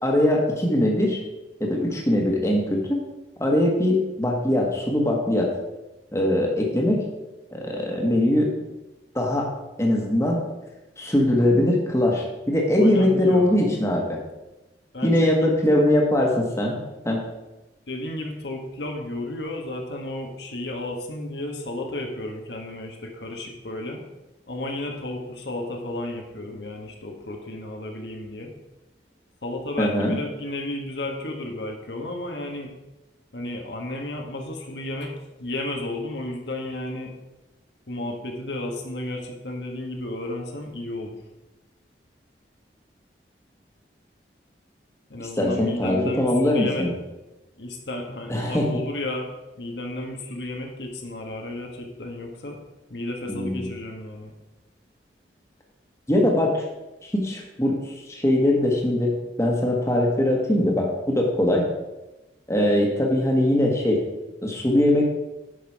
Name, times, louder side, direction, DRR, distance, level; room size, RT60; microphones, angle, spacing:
voice 1, 0.0-1.2 1.6-3.0 3.4-5.5 6.1-7.0 7.5-8.5 9.1-9.5 9.8-10.4 11.0-14.2 15.0-17.2 29.8-30.2 45.4-46.9 48.3-48.7 53.3-53.7 56.1-56.6 57.0-57.8 58.1-59.1 59.4-61.7 62.5-64.0 64.4-65.1, left 1 dB, 15° left, 0 dB, 1.4 m, -21 dB
voice 2, 12.7-13.6 14.9-15.5 17.9-24.0 24.5-28.5 29.4-32.7 33.3-37.1 37.9-41.2 45.1-46.9 47.6-49.3 49.6-52.6 52.9-54.3, left 1 dB, 80° left, 1 dB, 1.5 m, -33 dB
9.9 x 5.9 x 4.7 m, 1.0 s
head